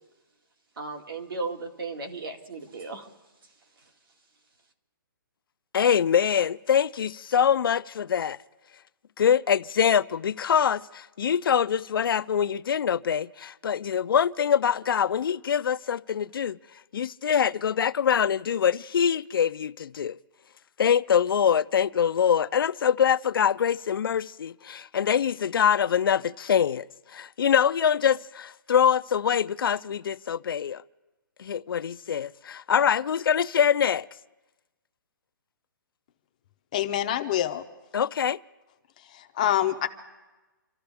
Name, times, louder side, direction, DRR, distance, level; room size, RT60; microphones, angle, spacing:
voice 1, 0.8-3.1, right 3 dB, 75° right, 2.2 m, -35 dB
voice 2, 5.7-8.4 9.2-16.6 16.9-20.2 20.8-26.9 27.1-30.8 31.4-34.1 37.9-38.4, left 8 dB, 75° left, 0.4 m, -24 dB
voice 3, 36.7-37.6 39.0-39.9, left 11 dB, 20° left, 0.5 m, -26 dB
27.5 x 13.5 x 3.4 m
hypercardioid pair, 175°, 12 cm